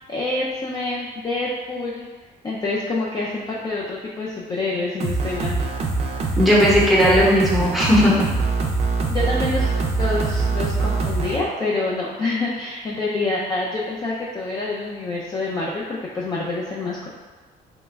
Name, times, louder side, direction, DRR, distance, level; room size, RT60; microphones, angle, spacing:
voice 1, 0.1-2.1 2.4-5.6 6.2-6.3 9.1-17.1, left 2 dB, 25° left, -5 dB, 0.4 m, -27 dB
sound 1, 5.0-11.4, right 3 dB, 40° right, 0.4 m, -23 dB
voice 2, 6.4-8.2, equal, ahead, -6 dB, 0.9 m, -16 dB
3.0 x 2.2 x 3.3 m, 1.3 s
cardioid pair, 110°, 17 cm